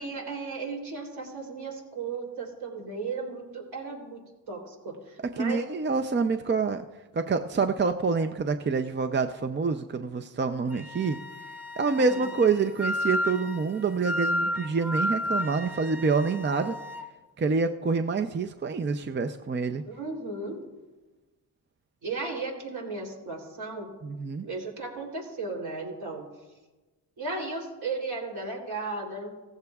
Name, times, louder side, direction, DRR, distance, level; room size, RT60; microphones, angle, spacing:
voice 1, 0.0-4.2 4.5-5.6 12.0-12.2 19.8-20.6 22.0-23.9 24.4-26.3 27.2-29.3, right 3 dB, 65° right, 0 dB, 3.3 m, -35 dB
voice 2, 5.4-6.8 7.1-11.2 11.8-16.8 17.4-19.8 24.0-24.4, right 4 dB, 25° right, 7 dB, 0.5 m, -27 dB
Wind instrument woodwind instrument, 10.7-17.1, left 1 dB, 5° right, 0.9 m, -32 dB
16.5 x 14.5 x 2.4 m, 1.2 s
cardioid pair, 80°, 41 cm